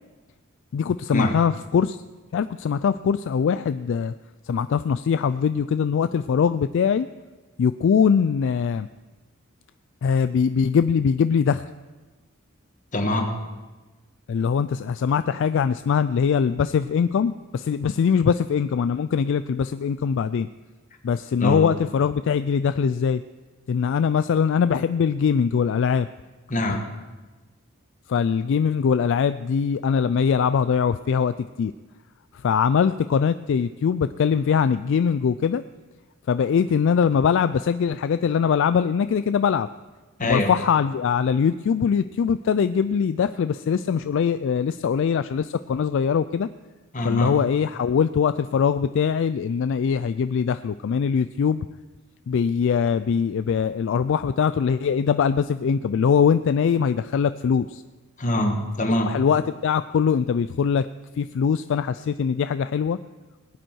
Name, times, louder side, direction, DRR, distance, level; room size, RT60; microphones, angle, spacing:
voice 1, 0.7-2.0 2.3-4.1 4.4-7.1 7.6-8.9 10.0-11.7 14.3-20.5 21.0-23.2 23.7-26.1 26.7-26.8 28.1-31.7 32.4-35.6 36.3-39.7 40.2-46.5 47.0-51.6 52.3-57.8 58.8-60.9 61.2-63.0, left 6 dB, 60° left, 13 dB, 0.3 m, -22 dB
voice 2, 12.9-13.3 21.4-21.7 26.5-26.8 40.2-40.5 46.9-47.3 58.2-59.1, left 1 dB, 40° left, 4 dB, 1.5 m, -24 dB
19.5 x 9.1 x 4.6 m, 1.2 s
head